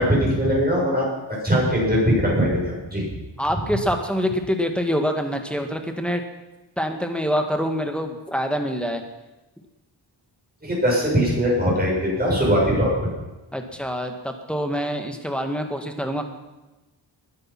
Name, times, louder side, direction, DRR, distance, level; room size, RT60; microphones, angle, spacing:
voice 1, 0.0-3.1 10.6-13.1, equal, 20° right, -4 dB, 7.4 m, -21 dB
voice 2, 3.4-6.2 6.8-9.0 13.5-16.3, equal, ahead, 5 dB, 1.8 m, -25 dB
20.5 x 11.0 x 6.0 m, 1.1 s
wide cardioid pair, 115°, 46 cm